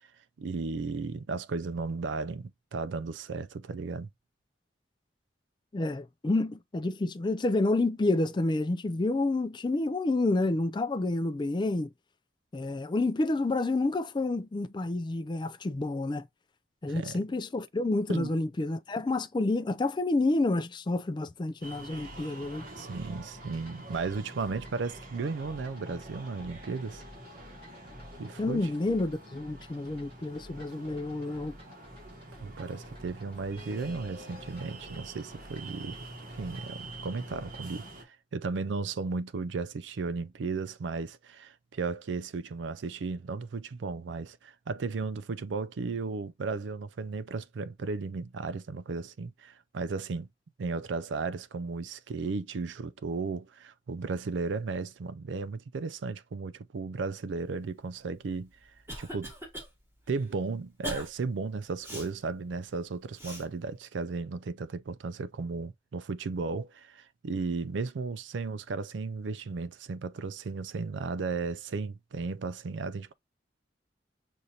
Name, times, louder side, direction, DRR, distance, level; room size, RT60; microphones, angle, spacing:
voice 1, 0.4-4.1 16.9-17.2 18.1-18.3 22.8-27.0 28.2-28.7 32.4-36.1 36.4-50.3 50.6-58.5 59.0-59.3 60.1-73.1, right 4 dB, 85° right, 0.4 m, -35 dB
voice 2, 5.7-11.9 12.5-16.3 16.8-22.7 28.4-31.6, left 2 dB, 25° left, 0.4 m, -29 dB
sound 1, 21.6-38.0, right 1 dB, 50° right, 1.4 m, -47 dB
sound 2, 21.9-37.8, equal, 30° right, 3.3 m, -53 dB
Cough, 58.3-59.7 60.1-60.3 60.8-61.1 61.8-62.1 63.2-63.4, equal, 15° right, 1.7 m, -39 dB
6.4 x 2.5 x 2.7 m
head